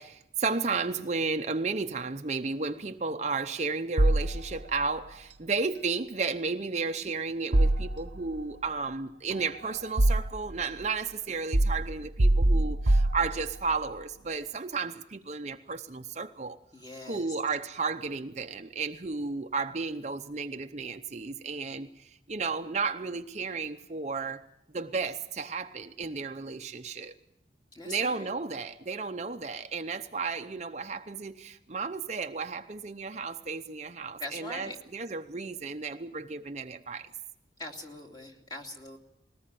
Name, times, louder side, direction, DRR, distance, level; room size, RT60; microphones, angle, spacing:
voice 1, 0.0-16.6 17.0-24.5 24.7-27.1 27.8-37.1, right 4 dB, 40° right, 0.7 m, -33 dB
sound 1, 4.0-4.9 7.5-8.4 9.3-10.6 11.5-13.8, right 1 dB, 85° right, 1.1 m, -25 dB
voice 2, 16.7-17.2 27.7-28.3 34.2-34.8 37.6-39.0, left 2 dB, 25° left, 2.6 m, -42 dB
21.0 x 18.5 x 7.6 m
head